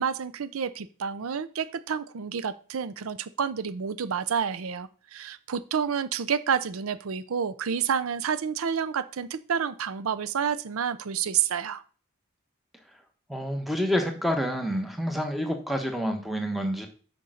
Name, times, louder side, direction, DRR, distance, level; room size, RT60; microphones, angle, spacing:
voice 1, 0.0-11.8, right 7 dB, 80° right, 13 dB, 0.5 m, -29 dB
voice 2, 13.3-16.9, equal, ahead, 4 dB, 1.1 m, -28 dB
6.8 x 5.2 x 6.3 m, 0.40 s
head